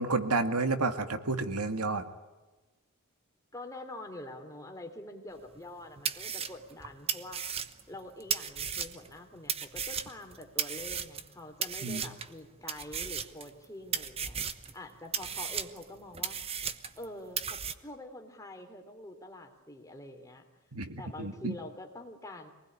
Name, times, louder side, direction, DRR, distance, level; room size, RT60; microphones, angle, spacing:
voice 1, 0.0-2.0 11.8-12.1 20.7-21.6, right 3 dB, 85° right, 9 dB, 2.1 m, -31 dB
voice 2, 3.5-7.5 7.9-14.4 14.7-16.4 17.0-20.5 21.0-22.5, left 1 dB, 15° left, 3 dB, 3.2 m, -46 dB
sound 1, 5.6-5.7 6.1-9.1 9.5-11.3 11.6-12.3 12.7-13.7 13.9-14.7 15.1-17.1 17.4-17.7, right 7 dB, 25° right, 1.0 m, -35 dB
26.0 x 20.0 x 10.0 m, 1.2 s
head